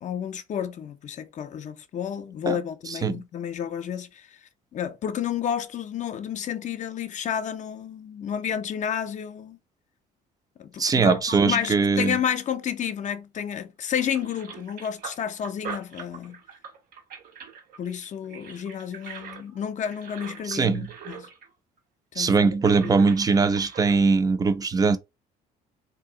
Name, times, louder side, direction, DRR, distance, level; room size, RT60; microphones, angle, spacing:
voice 1, 0.0-4.4 4.7-9.6 10.6-16.4 17.8-21.3 22.1-22.6 22.8-23.1, left 8 dB, 45° left, 0.6 m, -31 dB
voice 2, 10.8-12.2 20.5-20.9 22.2-25.0, right 4 dB, 20° right, 0.5 m, -21 dB
sound 1, 13.3-13.6 13.9-21.5 21.8-21.9 22.5-24.0, right 6 dB, 70° right, 1.4 m, -42 dB
2.7 x 2.7 x 3.8 m
cardioid pair, 110°, 17 cm